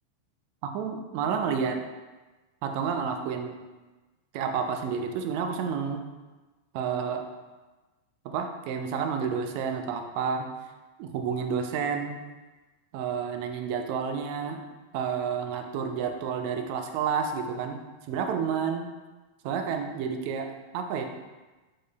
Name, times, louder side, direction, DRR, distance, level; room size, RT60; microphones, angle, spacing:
voice 1, 0.6-1.8 2.6-3.6 4.3-6.0 6.7-7.2 8.2-10.5 11.0-12.2 12.9-14.6 14.9-17.8 18.1-18.9 19.4-21.0, right 6 dB, 45° right, 5 dB, 0.3 m, -30 dB
3.7 x 3.1 x 2.3 m, 1.2 s
figure-of-eight pair, 90°, 0 cm